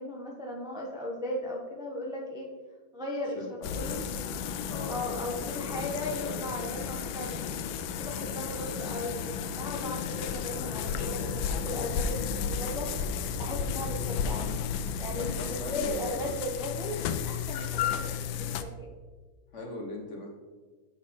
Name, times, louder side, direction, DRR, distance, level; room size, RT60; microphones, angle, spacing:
voice 1, 0.0-2.5 2.9-4.0 4.9-7.4 8.0-12.9 13.4-14.5 15.0-18.9, left 1 dB, 5° right, -2 dB, 0.5 m, -37 dB
voice 2, 3.3-4.0 4.7-5.9 6.2-6.5 15.2-16.5 19.5-20.3, left 2 dB, 45° left, 0 dB, 1.2 m, -40 dB
sound 1, 3.6-18.6, left 7 dB, 90° left, 1.4 m, -33 dB
7.5 x 5.9 x 4.2 m, 1.4 s
omnidirectional pair, 2.2 m